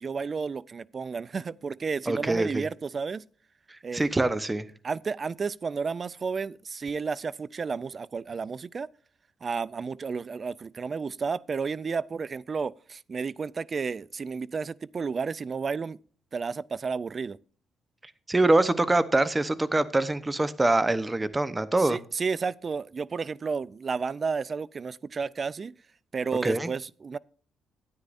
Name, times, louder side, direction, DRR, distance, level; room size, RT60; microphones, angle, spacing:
voice 1, 0.0-3.2 3.8-4.0 4.8-8.9 9.4-16.0 16.3-17.4 21.8-25.7 26.1-27.2, right 5 dB, 40° right, 0.4 m, -32 dB
voice 2, 2.1-2.7 3.9-4.7 18.3-22.0 26.4-26.7, right 2 dB, 15° right, 0.8 m, -24 dB
13.0 x 9.6 x 2.6 m
cardioid pair, 90°, 0 cm